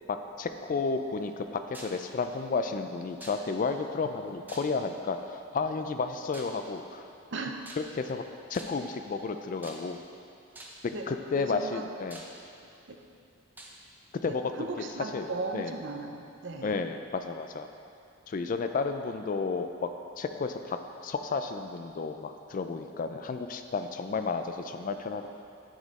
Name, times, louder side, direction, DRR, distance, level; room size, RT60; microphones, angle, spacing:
voice 1, 0.1-7.1 7.8-8.2 8.5-10.0 10.8-12.2 14.2-14.7 15.1-15.3 15.5-15.7 16.6-17.7 18.3-19.9 20.2-25.3, left 4 dB, 40° left, 7 dB, 0.3 m, -32 dB
sound 1, 1.7-2.1 3.2-3.7 4.5-5.0 6.3-6.6 7.6-8.1 8.5-8.9 9.6-10.1 10.5-10.9 11.6-11.7 12.1-12.8 13.6-13.8, right 1 dB, 10° right, 0.6 m, -47 dB
voice 2, 11.3-11.9 12.9-13.0 14.6-16.7, right 3 dB, 60° right, 3 dB, 0.6 m, -37 dB
9.8 x 5.1 x 4.1 m, 2.5 s
head